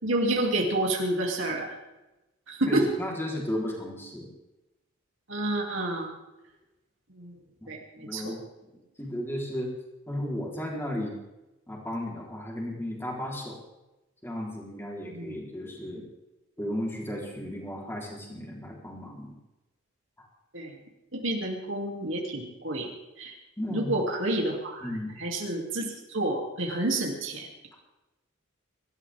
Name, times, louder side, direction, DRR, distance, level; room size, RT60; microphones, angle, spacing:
voice 1, 0.0-1.8 2.5-2.9 5.3-6.1 7.1-7.4 7.7-8.3 15.1-15.3 20.5-20.7 21.1-22.9 23.2-23.3 23.7-24.9 25.2-27.5, right 1 dB, 70° right, -1 dB, 2.9 m, -29 dB
voice 2, 2.7-4.3 8.0-8.7 9.0-9.7 10.1-11.2 11.7-13.6 14.2-16.0 16.6-19.3 20.2-20.3 23.6-23.9 24.8-25.2, left 1 dB, 10° left, -3 dB, 4.0 m, -34 dB
24.5 x 13.0 x 3.7 m, 1.0 s
head